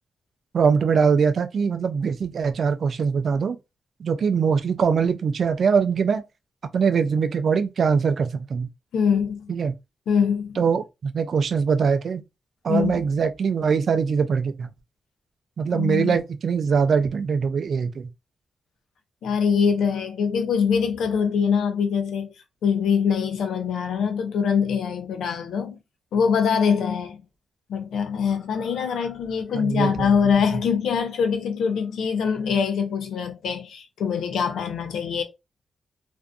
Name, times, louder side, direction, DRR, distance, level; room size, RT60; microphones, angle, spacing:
voice 1, 0.5-3.6 4.0-6.2 6.7-8.7 9.5-9.7 10.6-12.2 12.6-14.7 15.6-18.1 29.5-30.1, right 6 dB, 65° right, 0.3 m, -22 dB
voice 2, 8.9-9.5 10.1-10.6 12.7-13.0 15.7-16.2 19.2-22.3 22.6-25.8 26.1-27.2 27.7-35.2, left 6 dB, 90° left, 0.6 m, -23 dB
2.5 x 2.2 x 2.5 m
cardioid pair, 75°, 0 cm